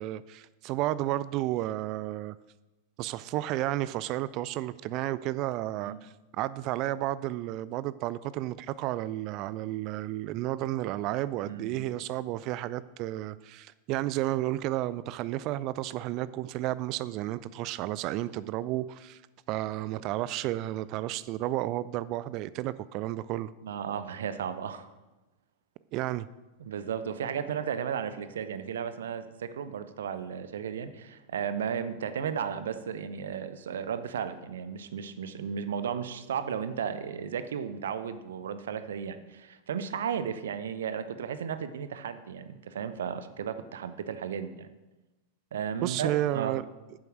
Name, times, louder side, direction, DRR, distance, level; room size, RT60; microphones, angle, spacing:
voice 1, 0.0-2.4 3.0-19.2 19.5-23.5 25.9-26.3 45.8-46.6, right 15 dB, 40° right, 0.3 m, -32 dB
voice 2, 11.5-11.8 23.6-24.9 26.6-44.7 45.5-46.6, right 7 dB, 60° right, 0.7 m, -34 dB
9.4 x 7.7 x 6.3 m
figure-of-eight pair, 90°, 0 cm